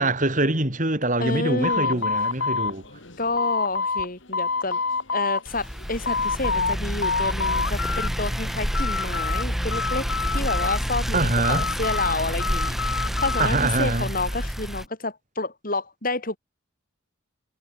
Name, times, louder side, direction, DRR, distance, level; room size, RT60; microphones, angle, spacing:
voice 1, 0.0-2.8 11.1-11.6 13.4-14.1, right 2 dB, 40° right, 4.3 m, -24 dB
voice 2, 1.2-2.0 3.2-4.8 5.1-10.1 10.3-16.4, left 3 dB, 45° left, 4.6 m, -29 dB
sound 1, 1.6-4.1 4.3-5.4 5.8-6.7 7.0-8.1 8.4-9.4 9.7-11.0 11.4-13.5, left 4 dB, 65° left, 3.0 m, -27 dB
sound 2, 5.5-14.9, equal, ahead, 6.0 m, -28 dB
head